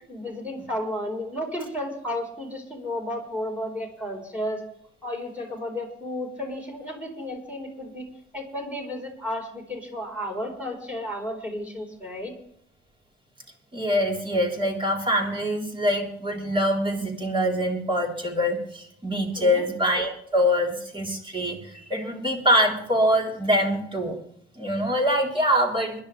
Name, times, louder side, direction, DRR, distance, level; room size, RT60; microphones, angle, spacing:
voice 1, 0.1-4.6 5.0-8.0 8.3-12.3 19.4-19.7, left 1 dB, 5° right, 1 dB, 4.4 m, -33 dB
voice 2, 13.7-24.2 24.6-26.0, equal, 25° right, 0 dB, 3.8 m, -24 dB
21.5 x 11.0 x 3.4 m, 0.66 s
cardioid pair, 90°, 20 cm